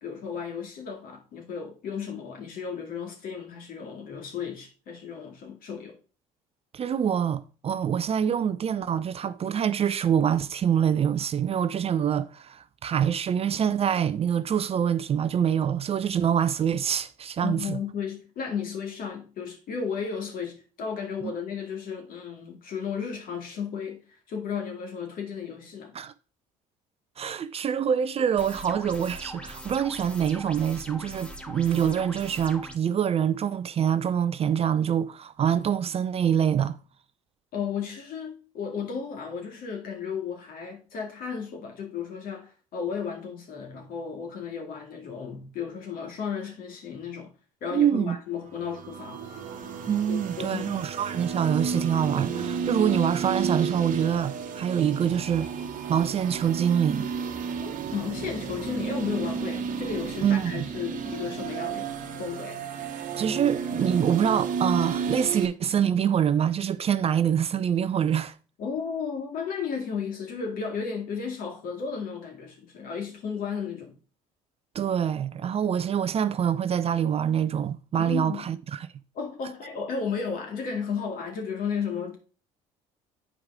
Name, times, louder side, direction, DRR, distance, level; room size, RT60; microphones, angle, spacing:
voice 1, 0.0-6.0 17.4-24.0 24.3-25.9 37.5-47.3 47.6-49.2 50.1-50.8 57.6-61.9 62.2-62.6 68.6-73.9 78.0-78.5 79.1-82.2, left 6 dB, 60° left, 2.1 m, -34 dB
voice 2, 6.7-17.8 21.2-21.3 25.9-26.1 27.2-36.8 47.7-48.2 49.9-55.5 55.9-57.1 60.2-60.7 63.2-68.3 74.7-78.9, right 8 dB, 35° right, 0.5 m, -25 dB
sound 1, 28.4-32.8, equal, 5° left, 1.1 m, -41 dB
sound 2, 48.5-65.5, right 6 dB, 50° right, 1.1 m, -32 dB
8.7 x 4.7 x 3.6 m
hypercardioid pair, 65°, 17 cm